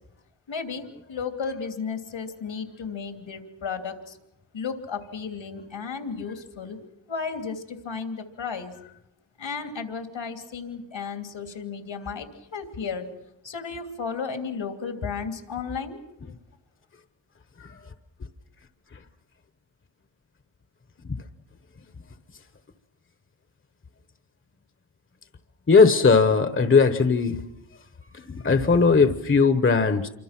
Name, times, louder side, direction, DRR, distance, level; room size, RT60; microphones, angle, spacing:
voice 1, 0.5-4.2 4.5-6.8 7.1-8.8 9.4-13.1 13.4-16.0, left 5 dB, 80° left, 6 dB, 3.1 m, -33 dB
voice 2, 25.7-27.4 28.3-30.1, left 4 dB, 30° left, 9 dB, 1.1 m, -18 dB
28.0 x 24.5 x 6.0 m, 0.83 s
wide cardioid pair, 175°, 45 cm